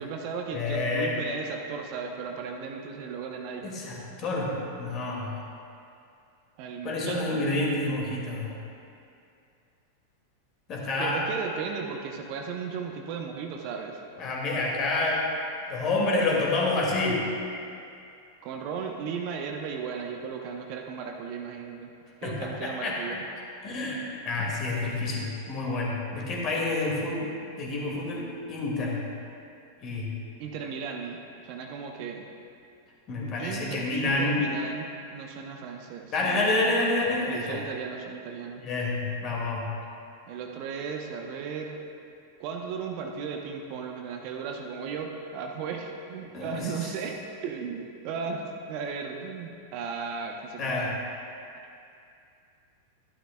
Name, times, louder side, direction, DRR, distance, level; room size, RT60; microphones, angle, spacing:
voice 1, 0.0-3.9 6.6-7.5 11.0-14.0 18.4-21.9 22.2-23.2 30.4-32.3 33.2-36.7 37.3-38.6 40.3-41.8 42.4-51.0, right 6 dB, 45° right, 2 dB, 0.8 m, -36 dB
voice 2, 0.5-1.1 3.6-4.5 4.8-5.4 6.8-8.5 10.7-11.2 14.2-15.3 15.7-17.2 22.2-23.2 23.6-27.3 27.6-29.0 29.8-30.1 33.1-34.4 36.1-37.6 38.6-39.7 46.3-46.7 50.6-50.9, left 2 dB, 35° left, -3 dB, 2.0 m, -28 dB
12.5 x 11.0 x 2.2 m, 2.5 s
figure-of-eight pair, 90°, 0 cm